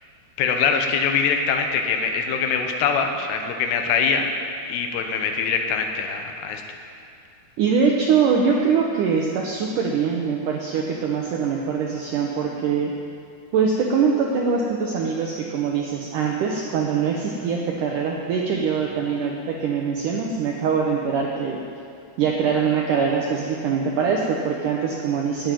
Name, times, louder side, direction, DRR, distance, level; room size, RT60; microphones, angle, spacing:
voice 1, 0.4-4.2 4.7-6.6, left 6 dB, 80° left, 4 dB, 3.0 m, -23 dB
voice 2, 7.6-12.9 13.5-21.6 22.2-25.5, right 6 dB, 80° right, 0 dB, 1.9 m, -23 dB
11.0 x 9.1 x 9.1 m, 2.5 s
omnidirectional pair, 4.8 m